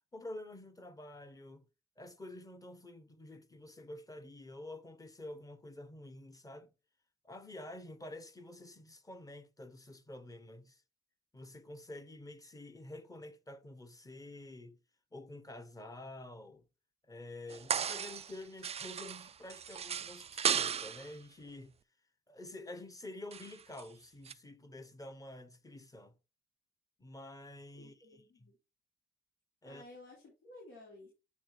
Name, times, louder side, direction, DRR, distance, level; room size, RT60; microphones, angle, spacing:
voice 1, 0.1-1.6 2.0-6.7 7.2-10.8 11.3-14.8 15.1-16.6 17.1-21.8 22.3-26.1 27.0-28.5 29.6-29.8, left 1 dB, 15° left, 1.2 m, -49 dB
sound 1, 17.5-18.4 18.6-21.1 23.3-23.8 24.2-24.3, right 8 dB, 30° right, 0.4 m, -35 dB
voice 2, 27.7-28.6 29.6-31.1, left 2 dB, 70° left, 3.5 m, -54 dB
8.6 x 3.9 x 3.3 m
cardioid pair, 90°, 20 cm